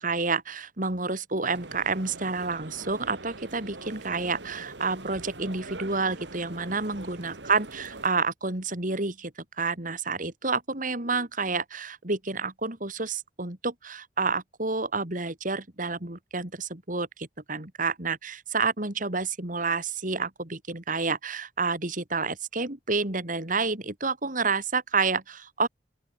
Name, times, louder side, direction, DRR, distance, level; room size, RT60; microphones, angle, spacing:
voice 1, 0.0-9.3 9.6-25.7, right 4 dB, 45° right, 2.9 m, -29 dB
sound 1, 1.5-8.1, right 2 dB, 65° right, 2.6 m, -43 dB
open air
head